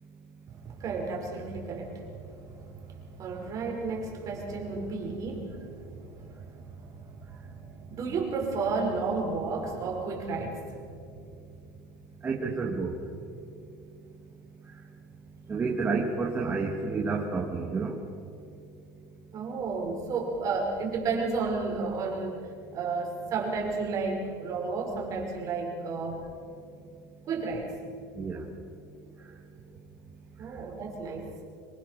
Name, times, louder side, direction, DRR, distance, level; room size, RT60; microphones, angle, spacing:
voice 1, 0.5-10.9 19.3-22.5 22.7-26.2 27.3-27.7 30.4-31.3, right 4 dB, 35° right, 0 dB, 5.7 m, -33 dB
voice 2, 12.2-13.0 15.5-18.0 28.2-28.4, right 4 dB, 20° right, -1 dB, 2.2 m, -29 dB
26.0 x 22.5 x 6.9 m, 2.6 s
supercardioid pair, 140°, 9 cm